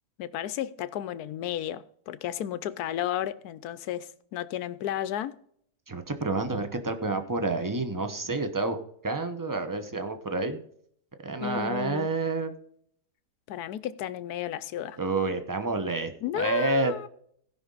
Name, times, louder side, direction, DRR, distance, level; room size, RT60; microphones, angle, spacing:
voice 1, 0.2-5.4 11.4-12.1 13.5-15.0 16.2-17.1, left 11 dB, 70° left, 1.1 m, -33 dB
voice 2, 5.9-10.6 11.2-12.5 15.0-17.1, right 3 dB, 15° right, 0.6 m, -29 dB
16.5 x 5.7 x 3.9 m
omnidirectional pair, 1.8 m